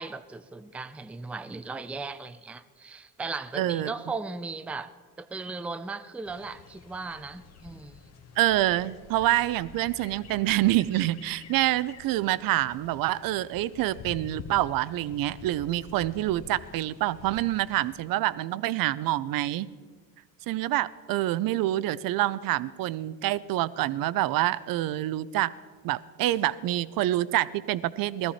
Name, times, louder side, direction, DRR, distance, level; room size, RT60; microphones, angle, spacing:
voice 1, 0.0-4.9 5.2-8.0, right 3 dB, 5° right, 0.5 m, -37 dB
voice 2, 3.5-3.9 8.4-19.7 20.5-25.5 25.8-28.3, right 15 dB, 55° right, 0.7 m, -27 dB
sound 1, 6.2-18.0, left 6 dB, 40° left, 1.2 m, -48 dB
18.0 x 13.5 x 4.3 m
supercardioid pair, 90°, 41 cm